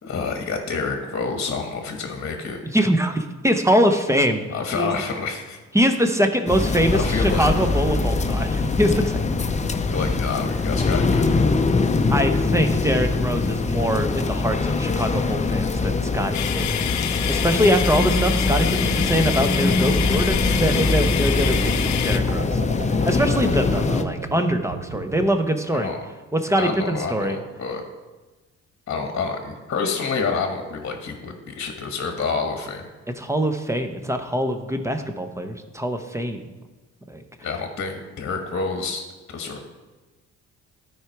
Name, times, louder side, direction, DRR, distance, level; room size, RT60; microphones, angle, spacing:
voice 1, 0.0-2.6 4.5-5.6 7.0-7.5 9.9-11.5 25.7-26.0 26.6-27.8 28.9-32.9 37.4-39.6, left 4 dB, 45° left, 4 dB, 1.3 m, -28 dB
voice 2, 2.7-4.4 4.8-4.9 5.7-9.2 12.1-16.8 17.3-22.6 23.0-25.9 26.3-27.4 33.2-36.4 37.1-37.2, equal, 10° right, 7 dB, 0.8 m, -23 dB
sound 1, 6.5-24.0, left 3 dB, 25° left, 0.6 m, -22 dB
sound 2, 16.3-22.2, left 10 dB, 70° left, 0.7 m, -27 dB
sound 3, 18.5-25.3, right 6 dB, 50° right, 0.6 m, -36 dB
12.5 x 4.9 x 4.6 m, 1.2 s
cardioid pair, 90°, 30 cm